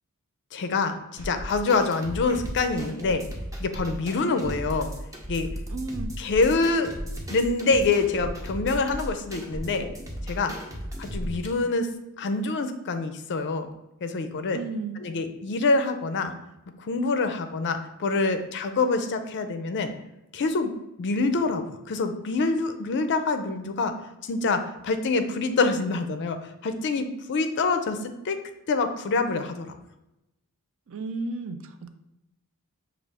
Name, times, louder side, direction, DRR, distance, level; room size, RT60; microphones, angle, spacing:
voice 1, 0.5-3.2 3.6-4.9 5.3-5.5 6.2-6.9 7.3-9.9 10.3-10.5 11.0-11.9 12.2-13.7 14.0-14.6 15.0-16.3 16.8-19.9 20.3-20.7 21.0-23.9 24.2-26.4 26.6-28.4 28.7-29.8, left 3 dB, 55° left, 8 dB, 0.4 m, -26 dB
sound 1, 1.2-11.5, equal, 15° right, 0.6 m, -36 dB
voice 2, 5.7-6.1 14.5-15.0 30.9-31.9, right 3 dB, 65° right, 9 dB, 0.4 m, -33 dB
6.0 x 2.4 x 3.4 m, 0.91 s
head